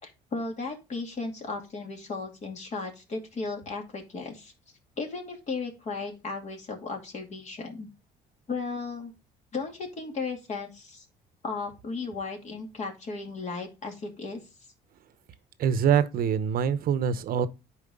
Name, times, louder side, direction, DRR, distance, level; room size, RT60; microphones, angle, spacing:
voice 1, 0.0-4.5 5.0-7.9 8.5-9.1 9.5-11.1 11.4-14.4, left 4 dB, 45° left, 2.5 m, -35 dB
voice 2, 15.6-17.5, right 8 dB, 60° right, 0.8 m, -24 dB
9.8 x 4.7 x 3.6 m
cardioid pair, 110°, 17 cm